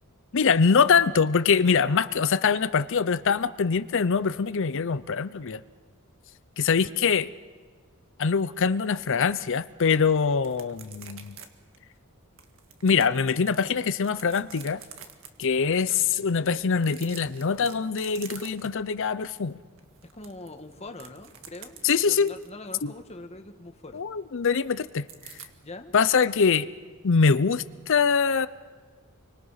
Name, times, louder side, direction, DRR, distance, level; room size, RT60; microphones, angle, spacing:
voice 1, 0.3-5.6 6.6-7.3 8.2-11.3 12.8-14.8 15.4-19.6 21.8-22.3 22.8-22.9 23.9-25.1 25.9-26.7 27.0-28.5, left 5 dB, 60° left, 15 dB, 0.6 m, -23 dB
sound 1, 10.4-11.5 11.7-11.8 12.4-13.6 14.0-15.3 16.7-18.8 19.2-19.4 19.8-22.5 25.1-25.5, right 8 dB, 65° right, 1.9 m, -46 dB
voice 2, 20.1-24.0 25.6-25.9, left 2 dB, 30° left, 6 dB, 1.6 m, -43 dB
29.5 x 24.5 x 5.7 m, 1.5 s
head